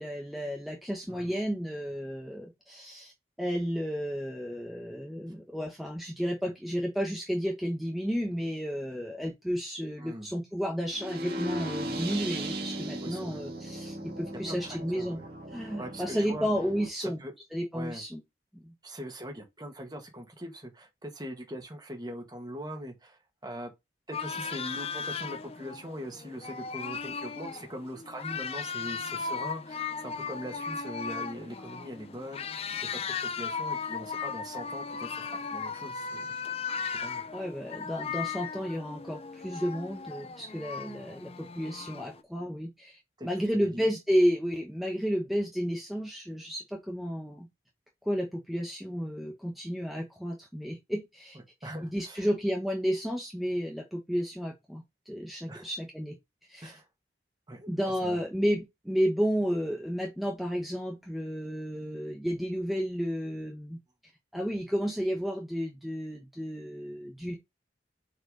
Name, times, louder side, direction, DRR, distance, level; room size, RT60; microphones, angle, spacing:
voice 1, 0.0-3.1 3.4-15.2 15.5-17.2 17.5-18.2 18.6-18.7 37.3-47.5 48.0-56.2 56.5-56.7 57.7-63.8 64.3-67.4, equal, ahead, 1.1 m, -32 dB
sound 1, 10.9-16.9, right 1 dB, 55° right, 1.9 m, -37 dB
voice 2, 13.0-13.4 13.8-13.9 14.5-15.3 15.8-16.5 17.0-17.3 17.7-18.0 18.8-23.7 24.1-36.6 36.9-37.3 43.2-43.9 51.6-52.3 55.5-55.7 56.6-56.9 57.5-58.2, equal, 25° right, 2.0 m, -42 dB
sound 2, 24.1-42.2, left 5 dB, 35° left, 0.6 m, -37 dB
6.5 x 4.7 x 3.9 m
head